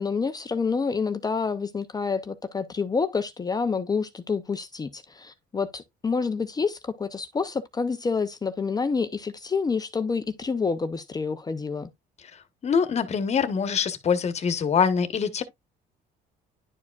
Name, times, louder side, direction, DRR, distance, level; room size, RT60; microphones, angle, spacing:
voice 1, 0.0-11.9, left 5 dB, 20° left, 0.6 m, -28 dB
voice 2, 12.6-15.4, left 6 dB, 40° left, 1.1 m, -24 dB
11.0 x 4.9 x 2.3 m
cardioid pair, 110°, 17 cm